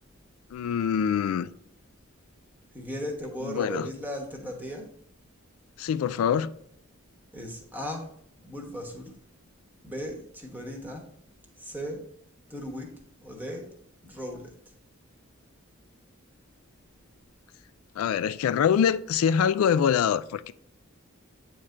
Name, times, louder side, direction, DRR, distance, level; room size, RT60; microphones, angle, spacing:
voice 1, 0.5-1.5 3.4-3.9 5.8-6.5 18.0-20.5, left 8 dB, 85° left, 0.3 m, -24 dB
voice 2, 2.7-4.9 7.3-8.1 8.4-9.2 9.8-11.1 11.6-12.1 12.5-13.7 14.0-14.5, equal, 10° right, 1.0 m, -37 dB
8.6 x 3.3 x 3.8 m
head